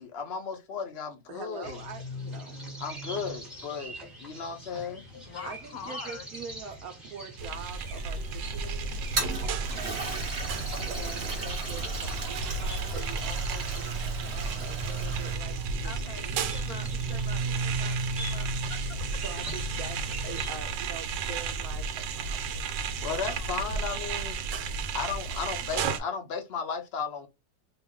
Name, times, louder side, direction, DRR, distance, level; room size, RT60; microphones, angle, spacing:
voice 1, 0.0-1.8 2.8-5.2 23.0-24.4 24.9-27.3, left 6 dB, 85° left, 0.5 m, -35 dB
voice 2, 1.3-2.7 5.2-10.0 10.9-17.7 19.2-22.7, right 6 dB, 65° right, 1.0 m, -44 dB
sound 1, 1.6-20.6, right 3 dB, ahead, 1.0 m, -38 dB
voice 3, 5.2-6.3 15.8-19.0 23.1-24.1, left 5 dB, 70° left, 0.9 m, -45 dB
sound 2, 7.4-26.0, right 4 dB, 80° right, 1.3 m, -33 dB
Toilet flush, 8.9-15.3, right 3 dB, 40° right, 1.1 m, -36 dB
2.9 x 2.4 x 3.6 m
omnidirectional pair, 2.0 m